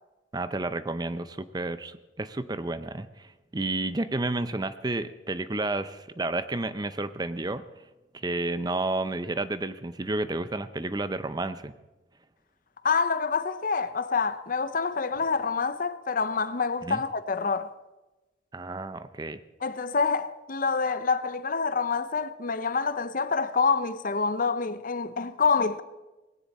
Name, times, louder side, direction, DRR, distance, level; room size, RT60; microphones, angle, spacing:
voice 1, 0.3-7.6 8.1-11.7 16.8-17.0 18.5-19.4, right 2 dB, 20° right, 0.6 m, -31 dB
voice 2, 12.8-17.7 19.6-25.8, left 5 dB, 45° left, 0.7 m, -27 dB
19.0 x 17.0 x 4.2 m
head